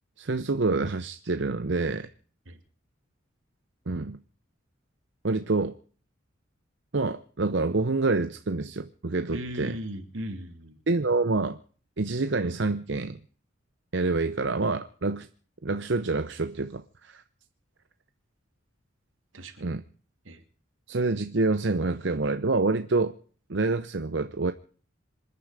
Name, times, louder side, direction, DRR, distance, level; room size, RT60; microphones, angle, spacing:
voice 1, 0.2-2.1 3.9-4.2 5.2-5.7 6.9-9.8 10.9-11.6 12.0-13.2 13.9-15.3 15.6-17.2 19.6-19.8 20.9-23.1 23.5-24.5, right 3 dB, 65° right, 0.8 m, -27 dB
voice 2, 9.3-10.8 19.3-19.7 20.2-20.4, equal, 85° right, 2.8 m, -37 dB
27.0 x 10.0 x 4.9 m
head